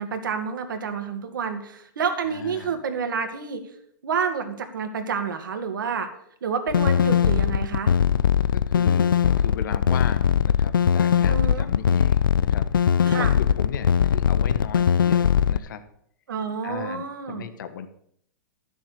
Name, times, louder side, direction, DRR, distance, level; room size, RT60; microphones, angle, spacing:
voice 1, 0.0-3.6 4.0-6.1 6.4-7.9 11.3-11.7 13.1-13.3 16.3-17.5, right 6 dB, 80° right, 6 dB, 2.2 m, -29 dB
voice 2, 2.3-2.8 8.5-15.8 16.6-17.9, left 8 dB, 70° left, 11 dB, 1.4 m, -36 dB
sound 1, 6.7-15.6, left 8 dB, 90° left, 0.5 m, -20 dB
12.5 x 7.2 x 6.9 m, 0.68 s
hypercardioid pair, 125°, 11 cm